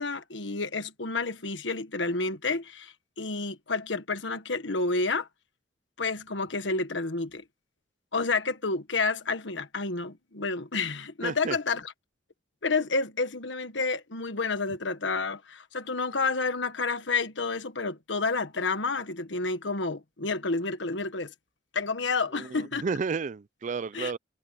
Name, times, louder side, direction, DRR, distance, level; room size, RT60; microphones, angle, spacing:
voice 1, 0.0-5.3 6.0-7.4 8.1-11.9 12.6-21.3 21.7-22.8 23.9-24.1, left 3 dB, 75° left, 1.5 m, -30 dB
voice 2, 11.2-11.6 22.3-24.2, right 5 dB, 40° right, 0.4 m, -32 dB
head